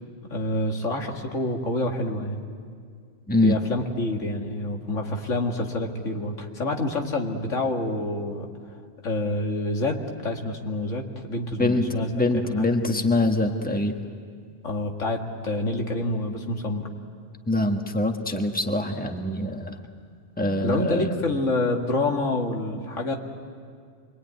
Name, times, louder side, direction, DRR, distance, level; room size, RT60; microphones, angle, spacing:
voice 1, 0.3-2.4 3.4-8.5 9.0-12.9 14.6-16.9 20.6-23.2, left 2 dB, 90° left, 2 dB, 2.3 m, -27 dB
voice 2, 12.1-13.9 17.5-19.8 20.4-21.1, left 2 dB, 5° left, 3 dB, 1.5 m, -24 dB
27.0 x 23.0 x 9.5 m, 2.1 s
omnidirectional pair, 1.3 m